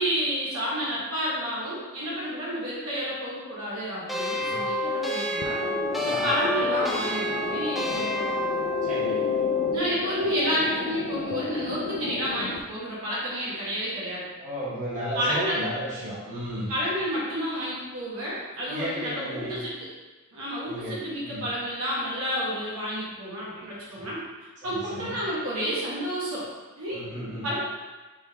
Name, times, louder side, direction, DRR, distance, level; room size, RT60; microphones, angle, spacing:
voice 1, 0.0-5.6 6.0-8.3 9.7-14.2 15.1-15.6 16.7-19.9 20.3-24.2 24.6-26.4 26.8-27.0 27.4-27.6, equal, 80° right, -7 dB, 1.3 m, -30 dB
sound 1, 4.1-9.8, left 2 dB, ahead, 0.4 m, -28 dB
sound 2, 5.4-12.6, left 3 dB, 80° left, 0.4 m, -34 dB
voice 2, 8.8-9.2 14.4-16.7 18.7-19.6 20.6-21.5 23.9-24.0 24.6-25.2 26.9-27.5, equal, 35° right, -9 dB, 1.3 m, -34 dB
4.4 x 3.5 x 2.8 m, 1.2 s
head